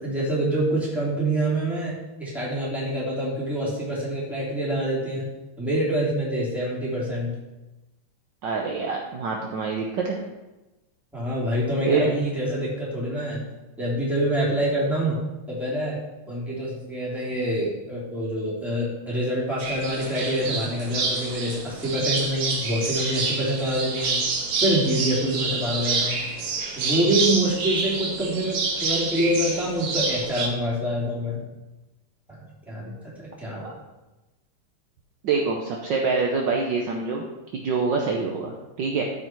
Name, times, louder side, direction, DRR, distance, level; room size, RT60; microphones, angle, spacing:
voice 1, 0.0-5.3 5.6-7.3 11.1-13.4 13.8-15.1 15.5-16.0 16.3-24.2 24.6-26.2 26.7-31.4 32.3-32.4 32.7-32.9 33.2-33.7, right 1 dB, ahead, -6 dB, 3.0 m, -26 dB
voice 2, 8.4-10.2 11.9-12.1 33.5-33.7 35.2-37.2 37.5-39.0, right 4 dB, 65° right, 0 dB, 1.4 m, -25 dB
sound 1, 19.6-30.5, right 4 dB, 80° right, 2.2 m, -28 dB
13.5 x 5.0 x 4.6 m, 1.1 s
omnidirectional pair, 2.4 m